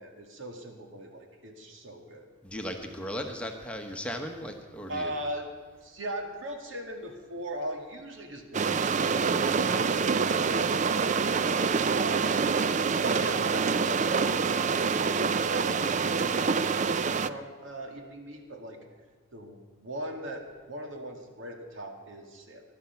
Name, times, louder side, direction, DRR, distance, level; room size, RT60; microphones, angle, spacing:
voice 1, 0.0-2.3 4.9-5.5 5.8-11.4 11.9-12.3 13.0-18.8 19.3-22.6, right 1 dB, 70° right, 3 dB, 2.2 m, -39 dB
voice 2, 2.4-5.1, equal, 5° left, 3 dB, 1.1 m, -36 dB
sound 1, 8.5-17.3, right 5 dB, 35° right, 0.4 m, -26 dB
20.5 x 12.0 x 5.8 m, 1.5 s
head